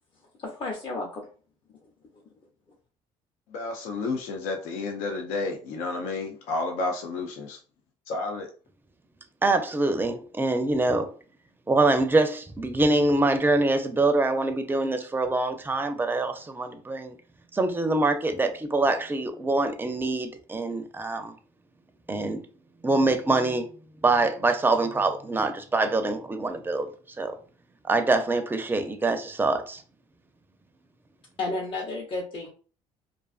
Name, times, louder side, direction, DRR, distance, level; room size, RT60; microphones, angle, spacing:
voice 1, 0.4-1.3 2.1-2.2 31.4-32.5, left 2 dB, 40° left, 0.7 m, -32 dB
voice 2, 3.5-7.6 8.1-8.5, left 3 dB, 85° left, 0.5 m, -31 dB
voice 3, 9.4-11.1 11.7-17.2 17.5-21.3 22.1-22.4 22.8-23.7 24.0-26.9 27.2-27.3 27.9-29.8, right 2 dB, 15° right, 0.4 m, -24 dB
2.4 x 2.4 x 2.4 m
cardioid pair, 95°, 13 cm